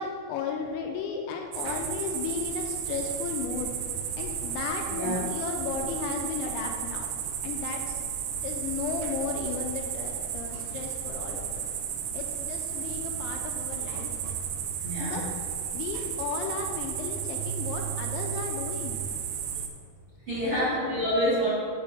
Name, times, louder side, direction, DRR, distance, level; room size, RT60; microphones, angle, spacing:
voice 1, 0.0-3.7 4.2-7.1 7.4-8.0 8.4-11.7 12.1-14.1 15.0-15.3 15.7-19.0 20.6-20.8, left 5 dB, 90° left, 2 dB, 2.6 m, -34 dB
sound 1, 1.5-19.7, right 8 dB, 85° right, 2.4 m, -33 dB
voice 2, 14.8-15.2 20.3-21.5, equal, 70° right, -10 dB, 1.3 m, -27 dB
8.3 x 6.9 x 4.3 m, 2.1 s
omnidirectional pair, 5.8 m